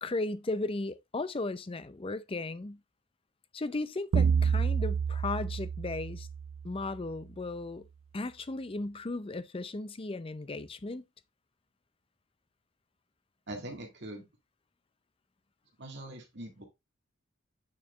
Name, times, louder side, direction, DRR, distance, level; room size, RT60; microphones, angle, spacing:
voice 1, 0.0-2.8 3.5-6.3 6.6-7.8 8.1-11.0, left 2 dB, 30° left, 0.5 m, -36 dB
sound 1, 4.1-6.9, right 6 dB, 90° right, 0.4 m, -29 dB
voice 2, 13.5-14.2 15.8-16.6, right 1 dB, 60° right, 1.8 m, -42 dB
8.6 x 4.6 x 3.2 m
head